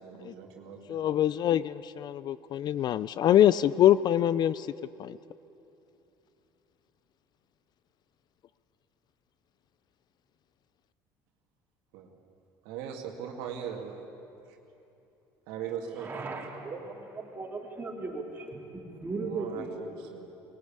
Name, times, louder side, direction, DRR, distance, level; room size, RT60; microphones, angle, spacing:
voice 1, 0.0-1.1 11.9-12.1 12.6-14.0 14.5-14.6 15.5-16.3 19.2-20.3, right 8 dB, 85° right, 1 dB, 2.3 m, -40 dB
voice 2, 0.9-4.7 5.0-5.2, left 11 dB, 45° left, 17 dB, 0.4 m, -24 dB
voice 3, 16.0-17.1 17.4-17.5 17.8-19.7, right 3 dB, 20° right, -1 dB, 3.3 m, -37 dB
20.5 x 17.5 x 8.7 m, 2.9 s
cardioid pair, 110°, 10 cm